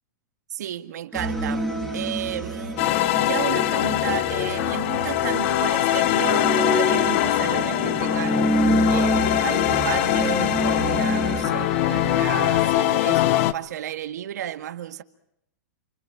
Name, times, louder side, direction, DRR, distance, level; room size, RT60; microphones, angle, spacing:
voice 1, 0.5-1.7 1.9-2.8 3.1-8.5 8.9-15.0, right 12 dB, 75° right, 1.8 m, -32 dB
sound 1, 1.1-12.7, equal, 5° left, 2.3 m, -28 dB
sound 2, 2.8-13.5, left 14 dB, 45° left, 0.8 m, -22 dB
29.5 x 24.0 x 5.1 m
supercardioid pair, 155°, 9 cm